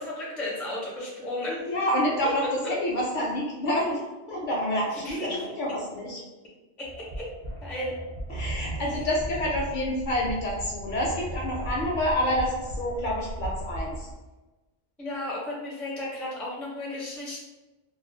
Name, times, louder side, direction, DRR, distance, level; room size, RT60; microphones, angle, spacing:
voice 1, 0.0-1.7 4.9-5.4 7.2-7.3 7.6-7.9 15.0-17.4, left 1 dB, ahead, -5 dB, 0.3 m, -34 dB
voice 2, 1.6-4.0 4.3-6.2 8.3-14.1, equal, 60° left, -3 dB, 0.6 m, -28 dB
sound 1, 6.8-14.1, right 1 dB, 50° right, 0.6 m, -36 dB
2.3 x 2.3 x 2.5 m, 1.1 s
omnidirectional pair, 1.1 m